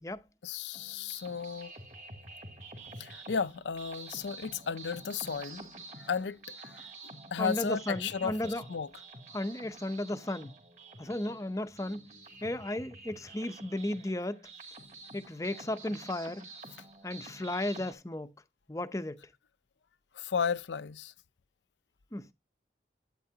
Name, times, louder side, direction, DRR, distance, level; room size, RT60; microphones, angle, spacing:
voice 1, 0.4-1.7 3.0-5.7 6.0-6.9 7.3-8.9 20.1-21.1, left 6 dB, 90° left, 0.6 m, -34 dB
sound 1, 0.7-17.9, right 2 dB, 40° right, 2.5 m, -49 dB
voice 2, 7.4-8.6 9.3-10.5 11.0-12.0 12.4-14.4 15.1-16.5 17.0-18.3 18.7-19.2 22.1-22.3, left 1 dB, 20° left, 0.6 m, -34 dB
12.0 x 8.9 x 2.8 m
head